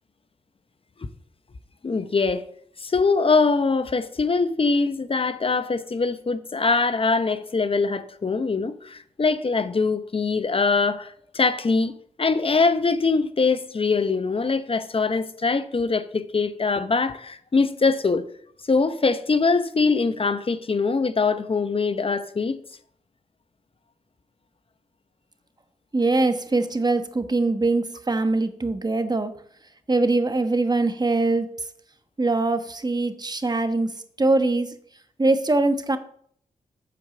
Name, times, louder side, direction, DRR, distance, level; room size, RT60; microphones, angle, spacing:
voice 1, 1.8-2.5 2.8-18.2 18.7-22.6, left 4 dB, 40° left, 0.8 m, -23 dB
voice 2, 25.9-29.3 29.9-31.5 32.2-34.7 35.2-36.0, right 2 dB, 30° right, 1.2 m, -22 dB
8.5 x 4.7 x 6.9 m
supercardioid pair, 45°, 14 cm